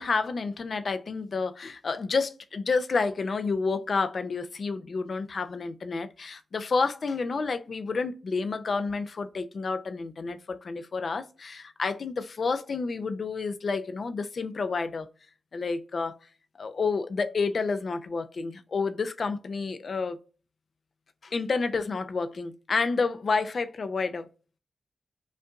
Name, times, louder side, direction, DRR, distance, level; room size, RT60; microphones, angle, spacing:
voice 1, 0.0-15.1 15.5-16.2 16.6-20.2 21.2-24.3, left 4 dB, 55° left, 0.5 m, -29 dB
5.2 x 2.5 x 2.4 m
wide cardioid pair, 100°, 0 cm